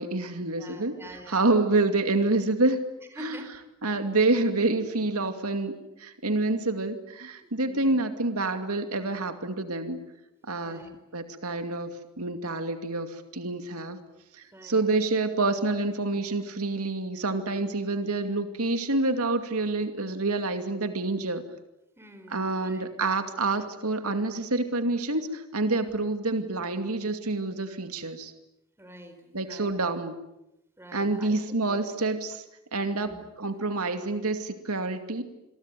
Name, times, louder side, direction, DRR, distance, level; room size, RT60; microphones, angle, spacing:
voice 1, 0.0-1.0 1.3-2.8 3.2-3.4 3.8-5.7 6.0-10.0 10.4-10.9 11.1-11.9 12.2-14.0 14.3-21.4 22.3-28.3 29.3-30.1 30.9-32.4 32.7-33.1 33.4-35.2, right 2 dB, 85° right, 7 dB, 2.5 m, -27 dB
voice 2, 0.6-1.4 3.1-3.5 7.4-7.9 10.6-10.9 14.5-14.8 22.0-22.9 25.8-26.0 28.8-29.8 30.8-31.3 31.7-31.8 32.9-33.2, right 1 dB, 10° right, 7 dB, 4.6 m, -47 dB
27.5 x 22.5 x 9.2 m, 0.90 s
head